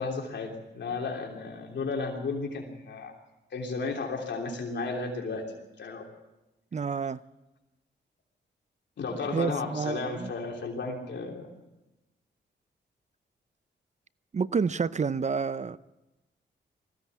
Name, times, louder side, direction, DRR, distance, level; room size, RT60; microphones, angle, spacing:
voice 1, 0.0-3.1 3.5-5.4 5.8-6.1 9.0-11.5, left 4 dB, 70° left, 3.3 m, -33 dB
voice 2, 6.7-7.2 9.3-10.3 14.3-15.8, right 5 dB, 40° right, 0.6 m, -29 dB
20.0 x 15.5 x 8.3 m
cardioid pair, 75°, 19 cm